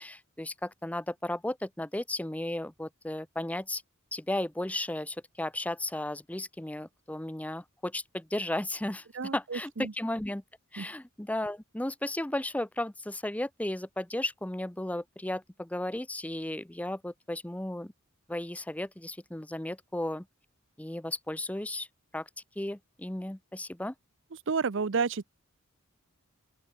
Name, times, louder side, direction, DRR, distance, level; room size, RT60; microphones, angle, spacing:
voice 1, 0.0-3.8 4.1-9.1 9.3-10.4 10.7-17.9 18.3-20.2 20.8-21.9 22.1-22.3 22.6-23.9, left 1 dB, 5° left, 0.6 m, -34 dB
voice 2, 9.1-9.9 10.8-10.9 24.5-25.2, right 5 dB, 60° right, 0.6 m, -30 dB
open air
head